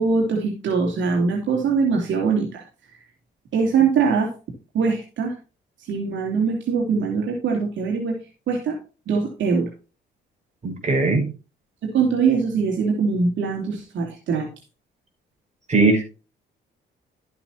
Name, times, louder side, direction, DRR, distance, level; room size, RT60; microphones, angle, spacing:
voice 1, 0.0-2.6 3.5-4.3 4.7-5.3 5.8-8.2 8.5-8.8 9.1-9.7 11.8-14.5, right 5 dB, 70° right, -1 dB, 3.0 m, -22 dB
voice 2, 10.6-11.3 15.7-16.0, right 3 dB, 35° right, 1 dB, 5.5 m, -19 dB
12.5 x 8.6 x 2.9 m, 0.33 s
cardioid pair, 90°, 20 cm